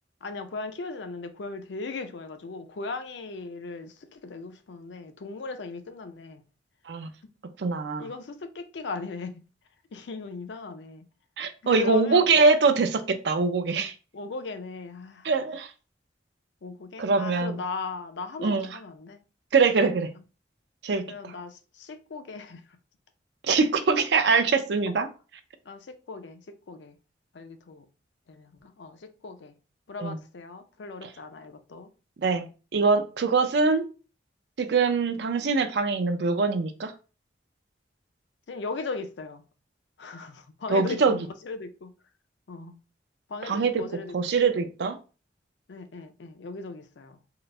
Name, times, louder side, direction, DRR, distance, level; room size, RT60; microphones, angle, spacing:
voice 1, 0.2-6.4 8.0-9.3 9.9-11.0 11.6-12.3 14.1-15.3 16.6-19.2 21.1-22.6 24.9-25.0 25.7-26.4 26.7-26.9 27.3-27.8 28.3-29.5 29.9-31.9 38.5-39.4 40.0-41.9 42.5-42.8 43.3-44.1 45.7-47.2, left 4 dB, 75° left, 0.5 m, -38 dB
voice 2, 7.6-8.1 11.4-13.9 15.2-15.7 17.0-17.6 18.4-18.7 19.5-20.1 20.8-21.0 23.4-25.1 30.0-30.2 32.2-32.5 32.7-33.9 34.6-36.9 40.7-41.2 43.5-43.8 44.1-45.0, right 4 dB, 65° right, 0.5 m, -23 dB
3.8 x 2.0 x 3.2 m
head